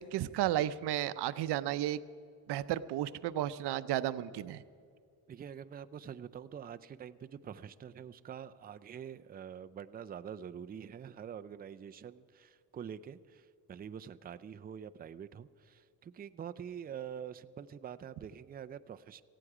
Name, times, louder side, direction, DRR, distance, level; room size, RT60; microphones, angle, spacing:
voice 1, 0.0-2.0 2.5-4.6, right 13 dB, 85° right, 15 dB, 0.6 m, -33 dB
voice 2, 5.3-19.2, right 8 dB, 25° right, 11 dB, 0.3 m, -46 dB
18.0 x 15.5 x 4.9 m, 2.3 s
cardioid pair, 140°, 39 cm